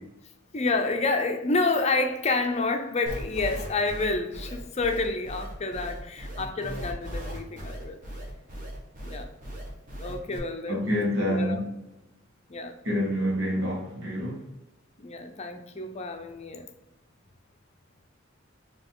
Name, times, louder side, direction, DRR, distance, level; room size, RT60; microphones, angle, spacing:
voice 1, 0.5-8.0 9.0-9.3 10.0-10.8 11.3-11.6 12.5-12.7 15.0-16.7, left 3 dB, 35° left, 0.6 m, -29 dB
sound 1, 3.1-10.4, equal, 40° right, 1.2 m, -37 dB
voice 2, 10.7-11.7 12.8-14.4, equal, 65° right, 1.5 m, -27 dB
4.8 x 3.0 x 3.7 m
head